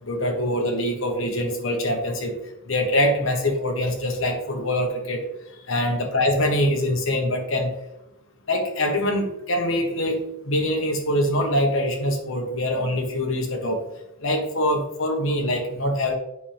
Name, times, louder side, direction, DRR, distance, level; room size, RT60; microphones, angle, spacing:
voice 1, 0.0-2.4 2.7-5.3 5.7-7.7 8.5-13.8 14.2-16.1, left 1 dB, 65° left, 3 dB, 1.3 m, -24 dB
8.4 x 5.2 x 3.5 m, 0.88 s
head